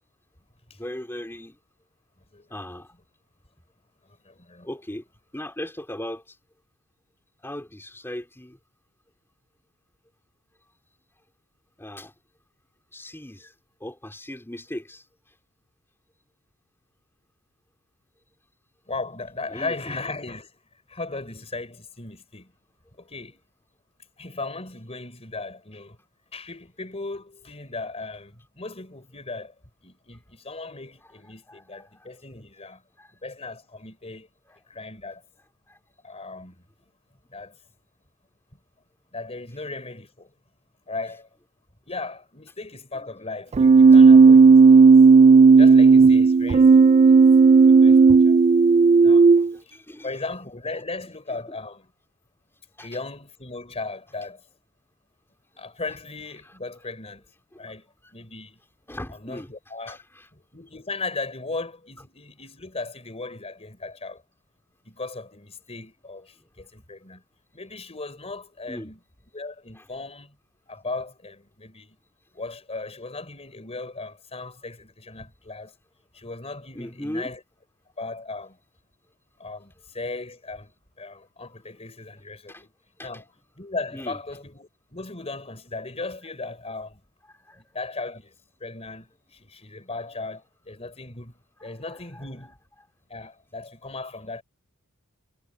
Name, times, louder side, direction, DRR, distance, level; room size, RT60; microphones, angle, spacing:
voice 1, 0.8-1.6 2.5-2.9 4.6-5.1 5.3-6.4 7.4-8.6 11.8-12.1 12.9-13.5 13.8-15.4 19.5-19.9 31.5-32.1 33.0-33.1 34.5-34.6 35.7-35.8 43.9-44.0 47.4-47.5 49.3-50.2 52.8-53.0 56.4-56.5 57.5-57.7 58.0-58.1 58.9-59.5 59.9-60.3 66.4-66.5 68.7-68.9 69.7-69.9 76.7-77.3 82.5-82.7 83.0-83.2 83.9-84.2 87.3-87.6 91.6-92.2, left 1 dB, 10° left, 3.7 m, -38 dB
voice 2, 4.0-4.7 18.9-20.5 20.9-22.5 23.0-23.4 24.2-26.0 26.3-29.5 29.8-32.8 33.2-34.3 34.7-35.2 36.0-36.6 37.3-37.6 39.1-40.3 40.9-41.3 41.9-44.9 45.6-48.4 49.0-49.3 49.7-49.8 50.0-51.9 52.8-54.4 55.6-57.2 57.6-57.9 58.1-58.6 59.1-60.0 60.5-64.2 64.8-67.2 67.5-69.0 69.3-70.4 70.7-72.0 72.3-75.7 76.1-77.4 78.0-78.6 79.4-80.7 81.0-82.7 83.0-83.2 83.6-87.0 87.6-88.3 88.6-92.5 93.1-94.4, left 3 dB, 30° left, 4.4 m, -37 dB
Keyboard (musical), 43.5-49.5, right 4 dB, 30° right, 0.3 m, -12 dB
head